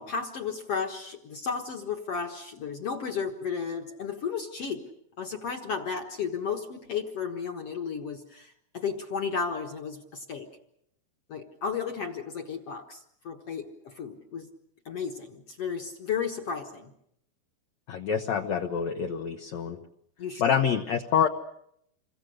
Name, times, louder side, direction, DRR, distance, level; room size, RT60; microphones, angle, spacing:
voice 1, 0.0-4.8 5.2-10.5 11.3-14.4 14.8-16.9 20.2-20.4, left 6 dB, 60° left, 4 dB, 1.6 m, -33 dB
voice 2, 17.9-19.8 20.4-21.3, left 8 dB, 90° left, 5 dB, 1.5 m, -26 dB
28.0 x 23.0 x 6.5 m, 0.74 s
omnidirectional pair, 4.8 m